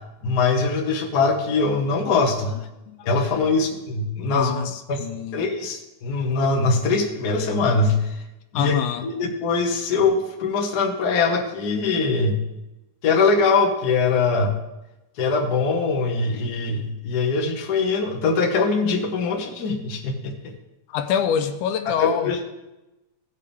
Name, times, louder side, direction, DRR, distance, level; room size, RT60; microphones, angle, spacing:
voice 1, 0.2-2.5 3.0-4.5 4.9-5.0 5.3-8.2 8.5-8.8 9.0-12.4 13.0-14.5 15.2-20.5 21.9-22.4, left 4 dB, 55° left, 2 dB, 1.0 m, -22 dB
voice 2, 2.9-3.5 4.3-5.4 8.5-9.1 20.9-22.3, left 8 dB, 85° left, 8 dB, 2.1 m, -25 dB
17.0 x 6.7 x 3.5 m, 0.97 s
omnidirectional pair, 3.6 m